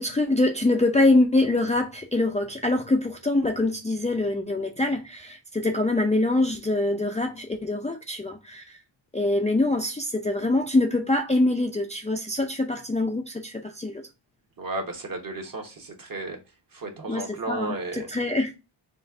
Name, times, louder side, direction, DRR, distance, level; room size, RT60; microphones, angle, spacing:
voice 1, 0.0-8.8 9.1-14.0 17.1-18.6, left 2 dB, 15° left, 0.5 m, -24 dB
voice 2, 14.6-16.4 16.7-18.1, right 2 dB, 45° right, 1.3 m, -34 dB
4.2 x 2.5 x 3.6 m
cardioid pair, 80°, 48 cm